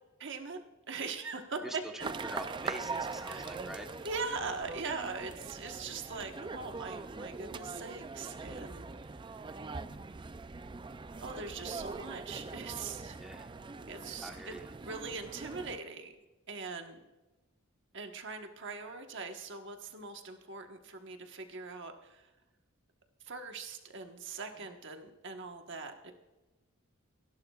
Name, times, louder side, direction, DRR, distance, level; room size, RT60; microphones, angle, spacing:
voice 1, 0.2-0.6 0.9-2.1 3.3-3.6 4.0-9.4 11.2-13.2 13.9-14.5 14.8-16.1 16.5-17.0 17.9-22.3 23.2-26.1, right 4 dB, 60° right, 4 dB, 1.3 m, -41 dB
voice 2, 1.6-3.9 5.4-5.5 13.2-13.5 14.2-14.7 24.5-24.7, equal, ahead, 2 dB, 1.1 m, -45 dB
sound 1, 2.0-15.8, right 4 dB, 20° right, 0.4 m, -42 dB
28.0 x 11.5 x 2.4 m, 1.1 s
head